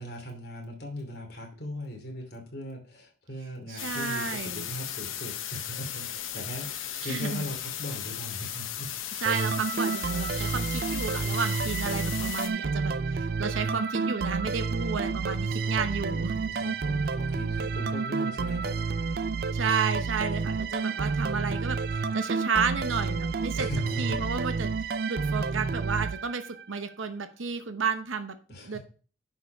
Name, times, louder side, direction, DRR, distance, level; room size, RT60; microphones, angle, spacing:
voice 1, 0.0-8.9 15.6-18.8 23.6-24.3 28.5-28.8, equal, 50° left, 1 dB, 2.8 m, -39 dB
voice 2, 3.7-4.7 7.0-7.4 9.2-16.5 19.5-23.7 24.0-28.4 28.6-28.8, right 5 dB, 85° right, 9 dB, 0.9 m, -32 dB
sound 1, 3.8-12.5, left 10 dB, 90° left, 0.9 m, -36 dB
sound 2, 9.3-26.8, right 4 dB, 50° right, 0.4 m, -30 dB
10.5 x 4.7 x 4.7 m, 0.39 s
head